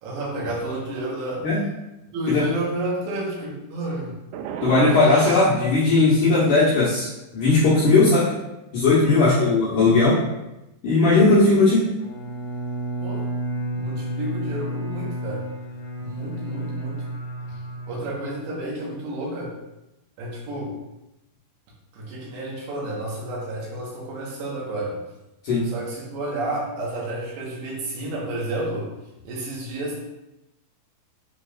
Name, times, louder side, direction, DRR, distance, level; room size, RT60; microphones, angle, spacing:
voice 1, 0.0-1.5 2.1-4.2 9.2-9.5 13.0-13.3 13.7-15.5 16.0-17.1 17.9-19.6 20.2-20.8 21.9-25.0 25.6-28.9 29.2-30.0, right 1 dB, 70° right, -4 dB, 3.3 m, -31 dB
sound 1, 4.3-5.6, right 7 dB, 90° right, 3.1 m, -31 dB
voice 2, 4.6-7.1 7.3-8.3 8.7-10.2 10.8-11.9 25.4-25.7, left 3 dB, 85° left, -9 dB, 1.8 m, -17 dB
Bowed string instrument, 12.0-18.6, right 1 dB, 50° left, 2.6 m, -31 dB
8.2 x 4.9 x 2.5 m, 0.94 s
omnidirectional pair, 5.4 m